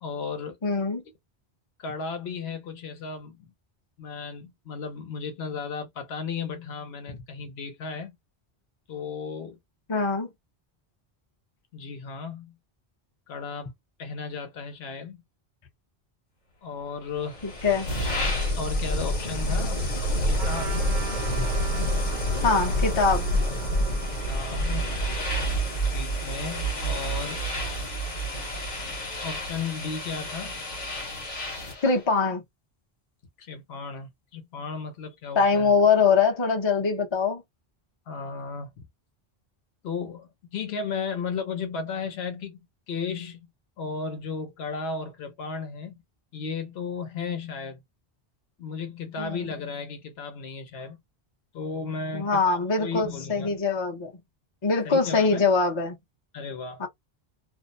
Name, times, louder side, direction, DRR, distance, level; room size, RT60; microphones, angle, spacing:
voice 1, 0.0-0.6 1.8-3.5 4.0-8.1 8.9-9.6 11.7-12.5 13.3-13.7 14.0-15.2 16.6-17.4 18.6-19.8 20.2-20.8 24.1-24.9 25.8-27.4 28.9-30.6 33.4-35.8 38.1-38.9 39.8-43.5 43.8-45.9 46.3-47.8 48.6-51.0 51.5-53.6 54.8-55.5 56.3-56.8, left 5 dB, 80° left, 1.0 m, -35 dB
voice 2, 0.6-1.0 9.9-10.3 17.4-17.9 22.4-23.3 31.8-32.4 35.3-37.4 49.2-49.4 52.1-54.1 54.6-56.0 56.8-56.9, left 4 dB, 30° left, 0.6 m, -23 dB
sound 1, 17.3-31.9, equal, 45° left, 1.0 m, -28 dB
Trumpet, 20.4-26.2, right 9 dB, 85° right, 0.9 m, -42 dB
2.5 x 2.0 x 2.5 m
omnidirectional pair, 1.0 m